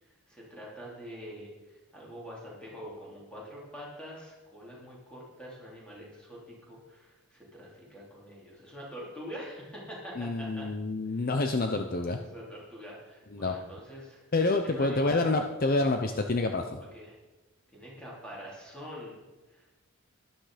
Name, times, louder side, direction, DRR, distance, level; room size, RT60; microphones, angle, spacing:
voice 1, 0.0-10.7 11.1-11.3 12.1-14.2 14.6-15.2 16.8-17.1 17.7-19.2 19.5-19.7, equal, 5° left, -5 dB, 3.9 m, -45 dB
voice 2, 10.2-12.2 13.3-13.6 14.3-16.8, left 2 dB, 40° left, 5 dB, 0.7 m, -28 dB
12.0 x 11.5 x 5.1 m, 1.2 s
head